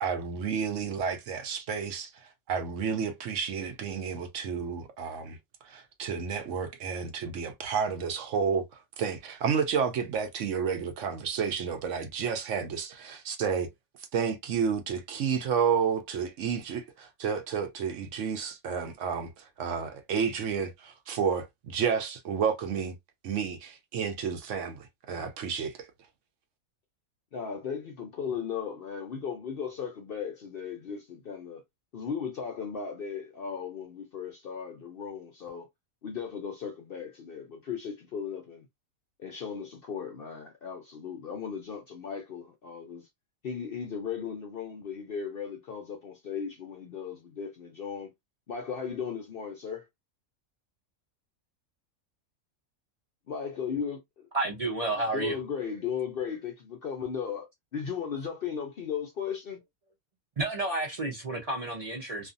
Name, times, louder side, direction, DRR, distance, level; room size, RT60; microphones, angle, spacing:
voice 1, 0.0-2.1 2.5-5.4 5.7-8.6 9.0-13.7 14.1-19.3 19.6-22.9 23.2-25.7, right 6 dB, 70° right, 0.9 m, -31 dB
voice 2, 27.3-31.6 31.9-35.7 36.0-38.7 39.2-43.1 43.4-48.1 48.5-49.9 53.3-54.3 55.1-57.5 57.7-59.6, left 6 dB, 60° left, 0.6 m, -36 dB
voice 3, 54.3-55.4 60.4-62.3, right 2 dB, 40° right, 0.5 m, -31 dB
2.5 x 2.4 x 2.5 m
omnidirectional pair, 1.5 m